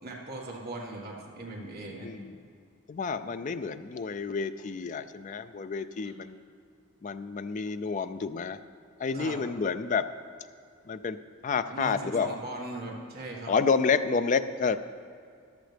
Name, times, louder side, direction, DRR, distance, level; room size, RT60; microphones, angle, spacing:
voice 1, 0.0-2.1 9.1-9.4 11.7-13.5, right 2 dB, 45° right, -2 dB, 1.7 m, -39 dB
voice 2, 1.9-2.4 2.9-6.4 7.0-8.6 9.0-10.1 10.9-11.2 11.4-12.4 13.5-14.8, left 5 dB, 35° left, 12 dB, 0.3 m, -29 dB
14.0 x 11.5 x 3.4 m, 2.3 s
head